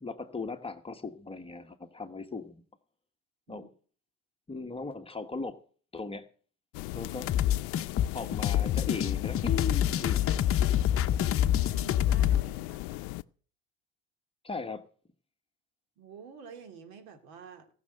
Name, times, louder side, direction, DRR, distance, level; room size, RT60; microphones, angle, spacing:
voice 1, 0.0-2.6 3.5-3.7 4.5-5.6 5.9-6.3 6.9-7.3 8.1-10.4 14.4-14.8, left 4 dB, 15° left, 7 dB, 1.2 m, -38 dB
sound 1, 6.7-13.2, left 20 dB, 90° left, 0.6 m, -38 dB
sound 2, 7.3-12.4, left 11 dB, 40° left, 0.8 m, -26 dB
voice 2, 11.4-13.1 16.0-17.7, right 5 dB, 90° right, 5 dB, 3.1 m, -49 dB
18.5 x 6.6 x 7.7 m, 0.42 s
cardioid pair, 120°, 35 cm